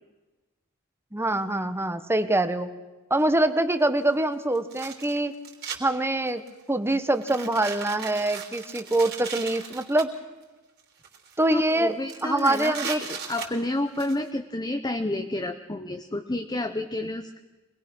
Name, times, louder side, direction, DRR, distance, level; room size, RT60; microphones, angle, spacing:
voice 1, 1.1-2.7 3.1-5.3 5.8-6.4 6.7-10.1 11.4-11.9 12.2-13.0, right 1 dB, 10° right, 10 dB, 1.1 m, -24 dB
sound 1, 3.2-3.3 4.5-5.8 6.3-6.6 7.1-10.0 10.8-11.4 11.7-11.8 12.1-14.2, right 6 dB, 50° right, 3.4 m, -37 dB
voice 2, 11.5-17.4, left 1 dB, 20° left, 6 dB, 0.9 m, -30 dB
26.0 x 20.0 x 6.2 m, 1.2 s
head